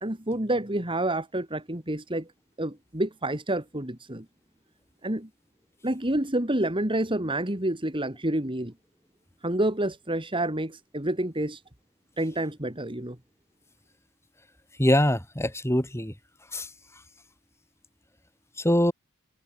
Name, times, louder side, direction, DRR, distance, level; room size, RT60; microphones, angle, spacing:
voice 1, 0.0-2.3 2.6-4.3 5.0-5.3 5.8-8.7 9.4-11.6 12.2-13.2, right 1 dB, 20° right, 3.0 m, -28 dB
voice 2, 14.8-16.1 16.5-16.7 18.6-18.9, left 1 dB, 10° left, 6.5 m, -23 dB
head